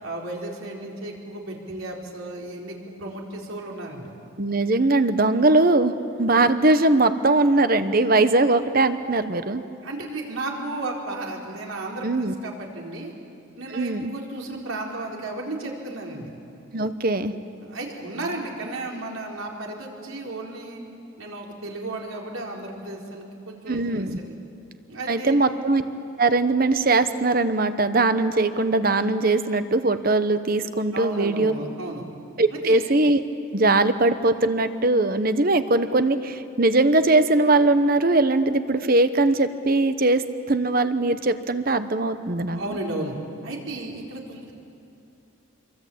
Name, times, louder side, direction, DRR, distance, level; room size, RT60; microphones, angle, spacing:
voice 1, 0.0-4.1 9.8-13.1 13.5-16.3 17.7-20.8 21.2-24.4 24.9-25.4 30.9-32.0 32.5-32.8 42.5-43.1 43.4-44.5, right 2 dB, 80° right, -1 dB, 4.3 m, -34 dB
voice 2, 4.4-9.6 12.0-12.3 13.7-14.1 16.7-17.3 23.7-24.2 25.1-25.8 26.2-31.5 32.4-33.2 33.5-42.6, right 2 dB, 45° right, 11 dB, 1.0 m, -21 dB
26.5 x 23.0 x 8.7 m, 2.7 s
head